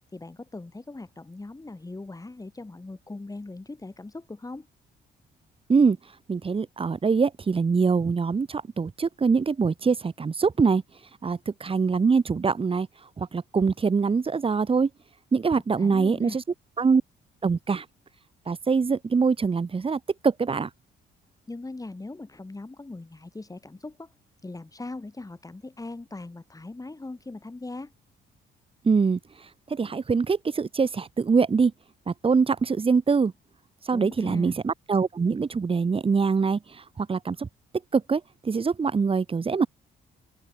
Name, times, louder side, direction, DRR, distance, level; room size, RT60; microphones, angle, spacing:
voice 1, 0.1-4.7 15.8-16.4 21.5-24.1 24.4-27.9 33.9-34.6, left 2 dB, 15° left, 4.6 m, -40 dB
voice 2, 6.3-10.8 11.2-12.9 13.2-14.9 15.3-16.4 16.8-17.0 17.4-17.8 18.5-20.7 28.8-29.2 29.7-31.7 32.1-33.3 33.9-37.5 37.9-39.7, right 5 dB, 25° right, 0.9 m, -24 dB
open air
cardioid pair, 90°, 20 cm